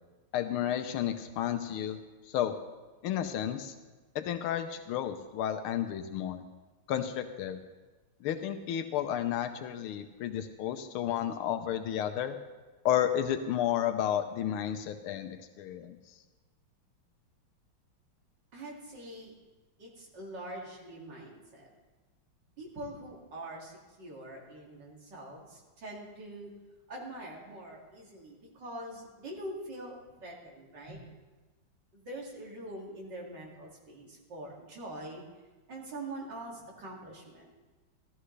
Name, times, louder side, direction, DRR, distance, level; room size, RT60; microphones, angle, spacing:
voice 1, 0.3-2.0 2.3-2.5 3.0-3.7 4.1-6.4 6.9-7.6 8.2-12.4 12.8-16.0, left 10 dB, 90° left, 8 dB, 1.6 m, -32 dB
voice 2, 18.5-19.3 19.8-21.7 22.6-26.5 26.9-31.0 31.9-35.2 35.7-37.5, right 1 dB, 55° right, -2 dB, 3.0 m, -44 dB
14.5 x 13.5 x 3.2 m, 1.2 s
omnidirectional pair, 2.3 m